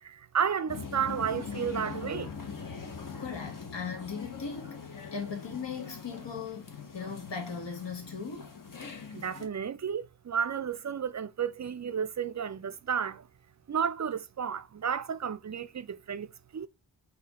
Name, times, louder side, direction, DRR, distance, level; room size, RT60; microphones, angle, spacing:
voice 1, 0.0-2.3 9.1-13.2 13.7-16.7, right 7 dB, 40° right, 0.4 m, -32 dB
sound 1, 0.7-9.5, left 5 dB, 45° left, 0.9 m, -42 dB
voice 2, 3.2-8.5, left 5 dB, 65° left, 1.3 m, -38 dB
4.2 x 2.8 x 4.0 m
wide cardioid pair, 65°, 46 cm